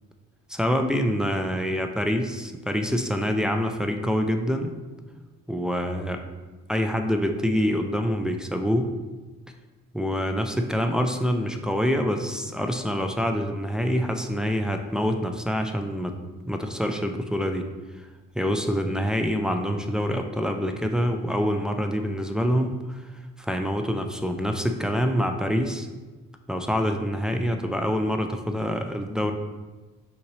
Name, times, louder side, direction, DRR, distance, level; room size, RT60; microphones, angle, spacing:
voice 1, 0.5-4.7 5.5-6.2 6.7-8.9 9.9-16.2 16.5-17.7 18.4-23.0 23.4-25.9 26.5-29.3, equal, ahead, 4 dB, 0.3 m, -26 dB
5.7 x 2.7 x 3.1 m, 1.2 s
cardioid pair, 90°, 30 cm